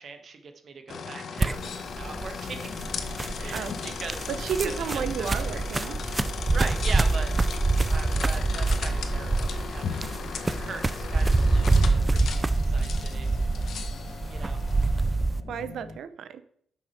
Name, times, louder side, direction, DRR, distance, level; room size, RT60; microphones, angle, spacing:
voice 1, 0.0-2.7 3.4-3.7 4.0-4.3 4.9-6.2 6.5-7.3 7.9-10.1 10.4-13.3 14.3-14.6, right 4 dB, 50° right, 6 dB, 1.5 m, -40 dB
sound 1, 0.9-15.3, left 6 dB, 65° left, 1.0 m, -37 dB
sound 2, 1.4-15.4, right 3 dB, 20° right, 0.5 m, -26 dB
sound 3, 2.4-16.0, left 3 dB, 40° left, 0.9 m, -43 dB
voice 2, 3.5-3.9 4.3-6.0 15.5-16.4, right 7 dB, 75° right, 12 dB, 0.8 m, -32 dB
9.2 x 6.2 x 5.9 m, 0.64 s
cardioid pair, 115°, 0 cm